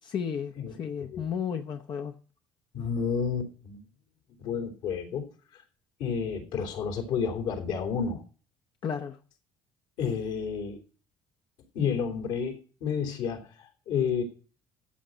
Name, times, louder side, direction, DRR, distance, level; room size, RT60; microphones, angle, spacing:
voice 1, 0.0-2.1 8.8-9.2, left 7 dB, 50° left, 4 dB, 0.9 m, -33 dB
voice 2, 2.7-3.8 4.4-5.2 5.5-5.6 6.0-8.2 10.0-10.8 11.7-14.2, left 6 dB, 75° left, 2 dB, 3.2 m, -30 dB
14.0 x 7.7 x 5.1 m, 0.41 s
supercardioid pair, 75°, 10 cm